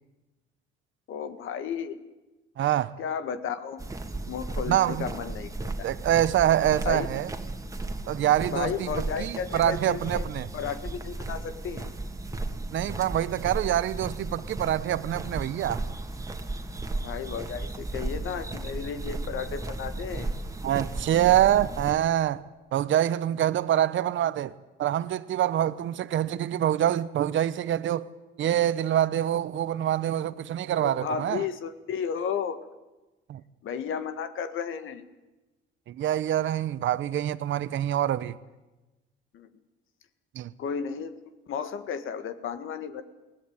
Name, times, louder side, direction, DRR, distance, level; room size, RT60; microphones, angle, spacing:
voice 1, 1.1-2.0 3.0-3.8 4.3-5.9 6.8-7.1 8.5-10.2 10.5-11.9 17.0-20.3 30.7-32.6 33.6-35.0 39.3-39.5 40.6-41.1 41.5-43.0, left 7 dB, 70° left, 1.8 m, -33 dB
voice 2, 2.6-2.9 4.7-5.1 5.8-7.3 8.1-10.5 12.7-15.8 20.6-22.4 22.7-24.5 24.8-28.0 28.4-31.5 33.3-33.4 35.9-38.4 40.3-40.5, right 11 dB, 65° right, 0.9 m, -25 dB
sound 1, 3.8-21.9, right 2 dB, 15° right, 2.2 m, -35 dB
22.5 x 17.5 x 9.5 m
cardioid pair, 95°, 21 cm